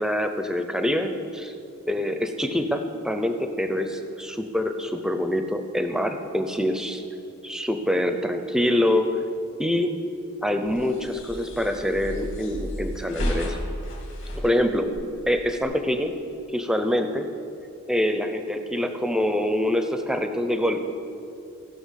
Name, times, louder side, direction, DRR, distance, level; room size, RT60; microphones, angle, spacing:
voice 1, 0.0-1.5 1.9-7.0 7.4-9.1 9.6-10.0 10.4-13.6 14.4-14.9 15.3-16.1 16.5-17.3 17.9-20.8, left 1 dB, 5° right, 7 dB, 0.5 m, -25 dB
sound 1, 10.6-15.6, equal, 55° left, 2.1 m, -33 dB
16.5 x 5.8 x 5.7 m, 2.7 s
head